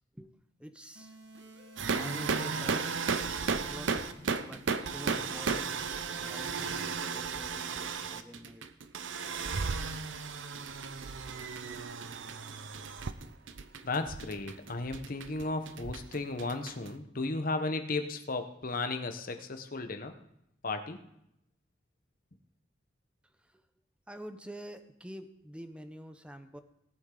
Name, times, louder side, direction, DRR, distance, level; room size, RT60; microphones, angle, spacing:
voice 1, 0.6-1.2 1.9-2.9 3.4-4.0 4.3-5.9 6.2-8.7 23.4-23.6 24.1-26.6, equal, 5° right, 9 dB, 0.7 m, -47 dB
sound 1, 1.0-8.9, right 2 dB, 70° right, 1.6 m, -53 dB
sound 2, 1.8-16.9, right 5 dB, 85° right, 0.7 m, -35 dB
voice 2, 13.8-20.1 20.6-21.0, left 3 dB, 50° left, 7 dB, 1.0 m, -34 dB
19.0 x 8.7 x 3.9 m, 0.79 s
head